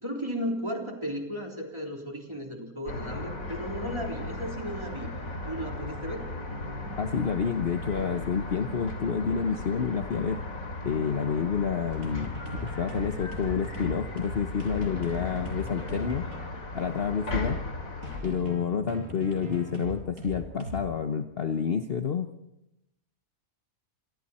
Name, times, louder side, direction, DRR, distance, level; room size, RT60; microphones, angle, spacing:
voice 1, 0.0-5.1 5.4-6.3, equal, 20° right, 1 dB, 3.7 m, -35 dB
sound 1, 2.8-18.2, left 2 dB, 70° left, 3.1 m, -37 dB
voice 2, 7.0-10.4 10.8-12.4 12.6-16.3 16.7-17.6 18.2-22.3, left 6 dB, 45° left, 7 dB, 1.1 m, -29 dB
sound 2, 11.9-20.8, left 1 dB, 75° right, 7.1 m, -39 dB
27.5 x 26.5 x 4.3 m, 0.86 s
omnidirectional pair, 1.5 m